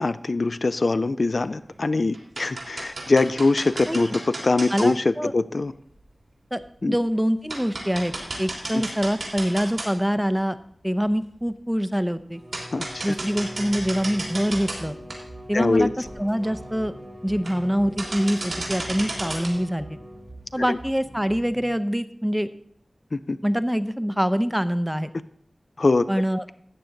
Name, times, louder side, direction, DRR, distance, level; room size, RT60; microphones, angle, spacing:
voice 1, 0.0-5.7 6.8-7.0 8.7-8.8 12.7-13.1 15.5-15.9 20.7-20.8 23.1-23.4 25.8-26.1, left 3 dB, 60° left, 12 dB, 0.4 m, -23 dB
sound 1, 1.4-1.8 2.1-4.9 6.0-6.1 6.6-6.7 7.1-7.2 7.5-10.2 10.6-10.7 11.9-12.0 12.5-14.8 15.1-15.2 15.7-15.8 16.0-16.1 16.4-16.7 17.3-17.7 18.0-19.5, right 2 dB, 90° right, 3.1 m, -33 dB
voice 2, 4.7-5.3 6.5-6.6 6.8-10.6 10.8-12.4 13.0-15.0 15.5-15.9 16.2-16.9 17.2-20.0 20.5-22.5 23.4-25.1 26.1-26.4, equal, 5° right, 13 dB, 0.5 m, -25 dB
Bowed string instrument, 12.3-20.6, equal, 30° right, 1.3 m, -43 dB
sound 2, 13.8-21.8, right 2 dB, 65° right, 1.4 m, -45 dB
13.0 x 8.3 x 3.8 m, 0.67 s
wide cardioid pair, 65°, 0 cm